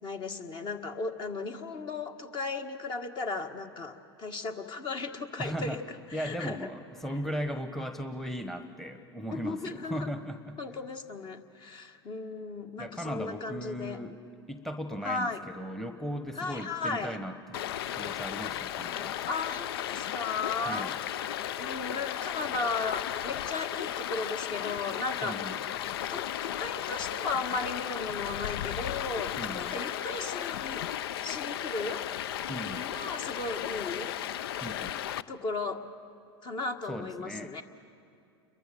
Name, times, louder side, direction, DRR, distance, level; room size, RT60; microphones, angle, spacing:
voice 1, 0.0-6.7 9.3-10.1 10.6-14.0 15.0-15.4 16.3-17.2 19.3-21.0 21.6-25.5 26.1-30.9 31.2-32.0 32.7-34.1 35.3-35.8 36.4-37.6, left 3 dB, 35° left, 6 dB, 1.7 m, -36 dB
voice 2, 5.4-5.8 6.1-10.6 12.8-14.1 14.5-17.6 17.9-19.1 20.7-20.9 25.2-25.6 29.4-29.8 32.5-32.9 34.6-35.0 36.9-37.5, equal, ahead, 9 dB, 1.2 m, -37 dB
Stream, 17.5-35.2, left 11 dB, 70° left, 0.5 m, -35 dB
29.5 x 22.5 x 7.1 m, 2.5 s
hypercardioid pair, 90°, 13 cm